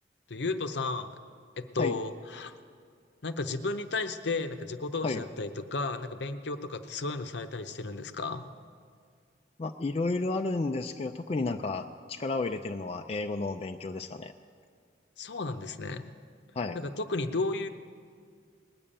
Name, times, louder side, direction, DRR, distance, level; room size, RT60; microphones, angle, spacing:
voice 1, 0.3-1.1 1.6-2.5 3.2-8.5 15.2-16.0 16.7-17.7, left 3 dB, 65° left, 9 dB, 0.7 m, -33 dB
voice 2, 9.6-14.3 16.6-16.8, left 3 dB, 35° left, 5 dB, 0.4 m, -32 dB
19.5 x 6.9 x 8.8 m, 2.1 s
head